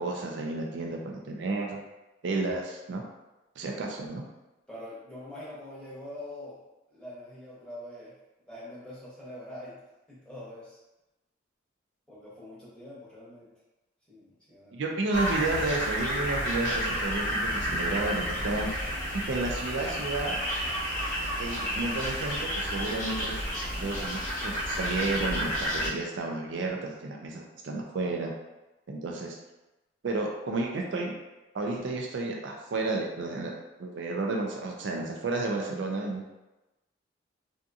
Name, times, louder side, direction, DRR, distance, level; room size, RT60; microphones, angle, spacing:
voice 1, 0.0-1.8 2.2-3.0 3.6-4.2 14.7-18.7 19.1-20.4 21.4-23.5 23.8-28.3 28.9-29.4 30.0-31.1 31.5-33.5 33.8-36.3, right 3 dB, 70° right, 0 dB, 0.4 m, -32 dB
voice 2, 4.7-6.6 6.9-8.1 8.5-10.8 12.1-13.5 14.1-14.9, left 1 dB, 5° left, -9 dB, 0.8 m, -44 dB
sound 1, 15.1-25.9, equal, 45° left, 0.8 m, -31 dB
2.6 x 2.5 x 2.3 m, 1.0 s
head